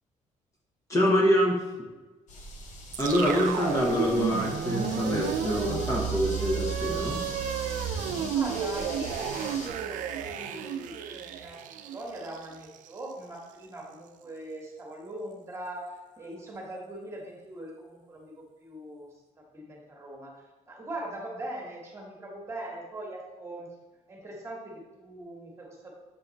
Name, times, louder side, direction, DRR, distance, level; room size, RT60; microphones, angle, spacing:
voice 1, 0.9-1.6 3.0-7.2, equal, 25° left, -2 dB, 1.0 m, -25 dB
sound 1, 2.3-9.7, left 1 dB, 70° left, 1.1 m, -41 dB
sound 2, 2.9-13.1, right 8 dB, 80° right, 0.5 m, -32 dB
voice 2, 8.3-19.1 19.4-20.3 20.7-23.7 24.1-25.9, right 1 dB, 20° right, -1 dB, 1.4 m, -41 dB
7.2 x 3.8 x 4.0 m, 1.2 s
cardioid pair, 150°, 13 cm